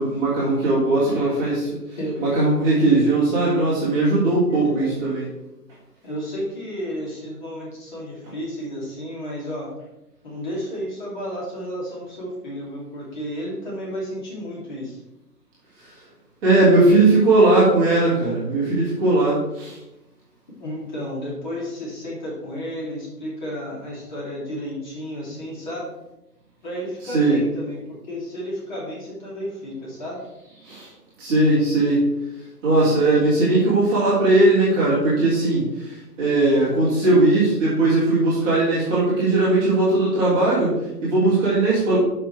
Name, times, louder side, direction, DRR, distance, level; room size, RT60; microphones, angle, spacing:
voice 1, 0.0-1.7 2.2-5.3 16.4-19.7 27.0-27.4 30.7-30.9 31.2-32.1 32.6-35.6 36.2-42.0, right 2 dB, 10° right, -9 dB, 1.7 m, -18 dB
voice 2, 4.6-5.0 6.0-9.7 10.2-15.0 20.6-25.9 26.6-30.2 37.0-37.3, equal, 30° left, -5 dB, 2.9 m, -32 dB
11.5 x 5.6 x 3.4 m, 0.92 s
figure-of-eight pair, 150°, 48 cm